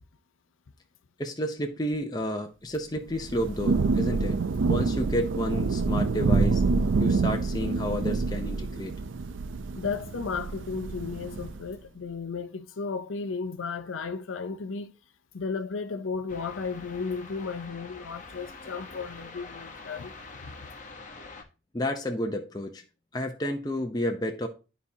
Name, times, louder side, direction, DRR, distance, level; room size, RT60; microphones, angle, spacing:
voice 1, 1.2-6.6 7.0-8.9 21.7-22.8 23.1-24.5, equal, 20° left, 0.6 m, -31 dB
Thunder / Rain, 3.1-11.7, right 4 dB, 75° right, 0.5 m, -27 dB
voice 2, 9.8-14.9 15.3-20.1 20.4-20.5, left 5 dB, 85° left, 0.6 m, -34 dB
sound 1, 16.3-21.4, left 3 dB, 40° left, 1.0 m, -45 dB
11.5 x 4.2 x 2.8 m
head